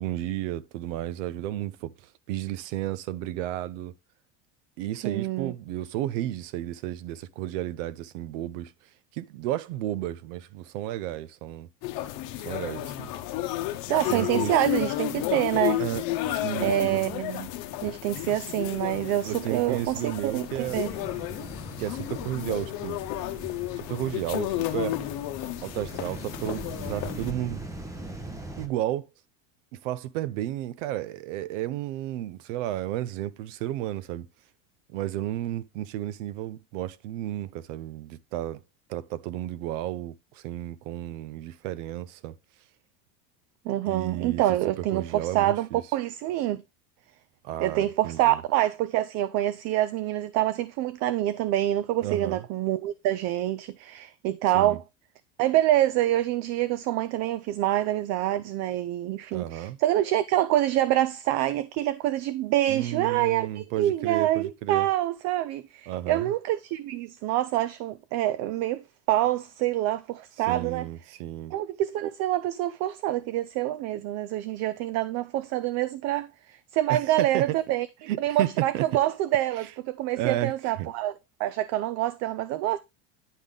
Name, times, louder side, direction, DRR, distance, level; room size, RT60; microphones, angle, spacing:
voice 1, 0.0-1.9 2.3-3.9 4.8-8.7 9.1-11.7 12.5-13.1 14.1-14.6 15.8-17.1 19.2-20.8 21.8-23.0 23.8-25.0 25.6-27.6 28.6-29.1 29.8-34.3 34.9-38.6 38.9-42.3 43.9-44.4 44.8-45.8 47.4-48.4 52.0-52.4 54.5-54.8 59.3-59.8 62.7-64.9 65.9-66.3 70.5-71.5 76.9-77.6 78.1-78.9 80.2-80.5 80.8-80.9, right 13 dB, 75° right, 0.7 m, -32 dB
voice 2, 5.0-5.5 13.9-15.8 16.6-17.5 17.8-20.9 43.7-46.6 47.6-54.8 55.4-68.8 69.1-70.9 71.5-81.1 81.4-82.8, right 14 dB, 45° right, 0.4 m, -26 dB
sound 1, 11.8-27.3, left 14 dB, 55° left, 0.9 m, -32 dB
sound 2, 20.7-28.7, right 1 dB, 10° right, 0.9 m, -41 dB
10.0 x 3.6 x 3.7 m
supercardioid pair, 130°, 38 cm